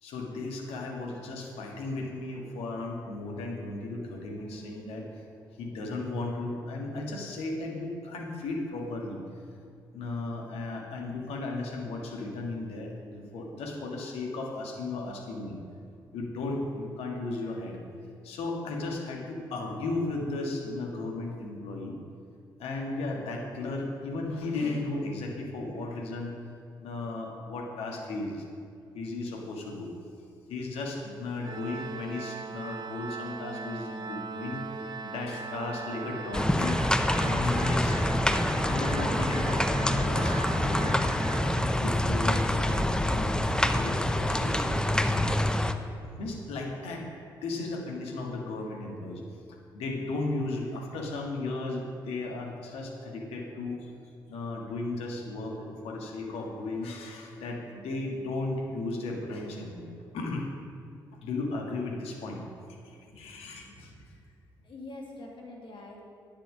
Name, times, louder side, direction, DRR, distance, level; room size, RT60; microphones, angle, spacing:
voice 1, 0.0-5.3 5.6-9.2 9.9-15.6 16.1-17.8 18.2-22.0 22.6-26.4 26.8-28.5 28.9-29.9 30.5-36.8 37.2-38.0 38.7-41.0 41.8-45.2 45.5-45.6 46.2-47.1 47.4-49.2 49.5-53.9 54.3-60.5 61.2-62.4 62.8-64.1, left 2 dB, 65° left, 1 dB, 1.7 m, -35 dB
Organ, 31.4-42.2, right 4 dB, 40° right, 0.9 m, -39 dB
sound 1, 36.3-45.7, left 1 dB, 5° left, 0.7 m, -26 dB
voice 2, 63.1-64.2 64.6-66.0, left 2 dB, 50° left, -1 dB, 2.5 m, -46 dB
10.0 x 7.5 x 6.3 m, 2.5 s
figure-of-eight pair, 40°, 11 cm